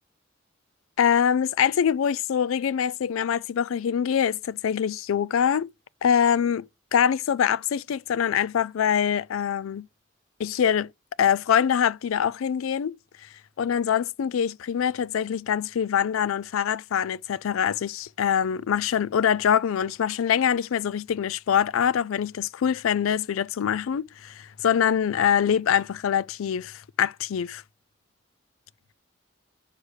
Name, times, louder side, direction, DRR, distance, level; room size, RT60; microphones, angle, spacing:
voice 1, 1.0-5.7 6.0-6.7 6.9-9.9 10.4-10.9 11.2-13.0 13.6-27.6, left 8 dB, 80° left, 0.4 m, -24 dB
6.5 x 4.9 x 6.4 m
head